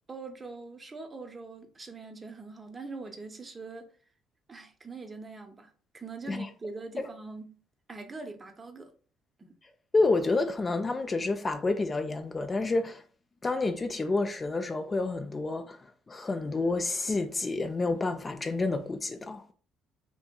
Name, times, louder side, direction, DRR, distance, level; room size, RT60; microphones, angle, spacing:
voice 1, 0.1-3.9 4.5-7.6 7.9-8.9 9.4-9.6, right 3 dB, 25° right, 0.5 m, -43 dB
voice 2, 9.9-13.0 13.4-15.8 16.1-19.4, left 3 dB, 25° left, 0.3 m, -29 dB
2.7 x 2.6 x 2.2 m
supercardioid pair, 90°, 0 cm